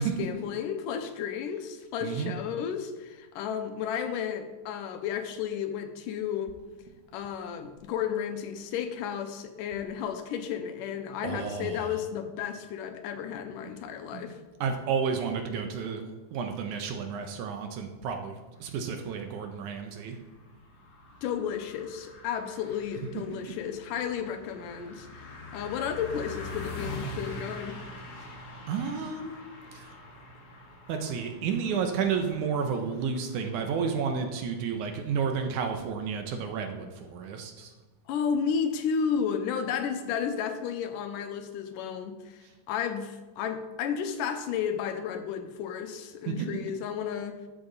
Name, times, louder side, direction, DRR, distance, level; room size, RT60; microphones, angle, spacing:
voice 1, 0.0-6.5 7.1-14.4 21.2-27.8 38.1-42.4 42.7-47.4, left 7 dB, 85° left, 7 dB, 2.4 m, -33 dB
voice 2, 2.0-2.3 11.2-11.9 14.1-14.3 14.6-16.0 16.3-18.4 18.6-20.2 28.2-28.4 28.7-29.3 29.7-29.9 30.9-37.7 46.3-46.5, right 6 dB, 75° right, 5 dB, 2.1 m, -31 dB
sound 1, 18.5-37.1, left 2 dB, 60° left, 2.6 m, -45 dB
12.0 x 7.0 x 4.0 m, 1.2 s
omnidirectional pair, 3.8 m